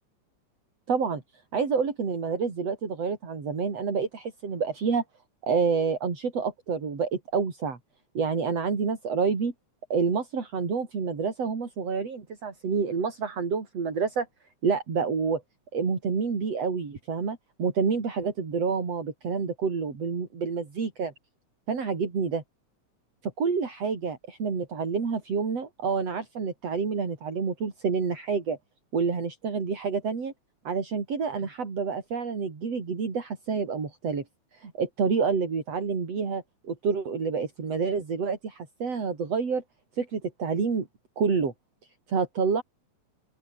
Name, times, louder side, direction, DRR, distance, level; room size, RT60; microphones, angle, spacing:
voice 1, 0.9-1.2 1.5-5.0 5.4-7.8 8.1-9.5 9.9-14.3 14.6-15.4 15.7-21.1 21.7-22.4 23.2-28.6 28.9-30.3 30.6-34.2 34.5-39.6 40.0-40.9 41.2-41.5 42.1-42.6, right 5 dB, 55° right, 5.1 m, -28 dB
open air
omnidirectional pair, 3.3 m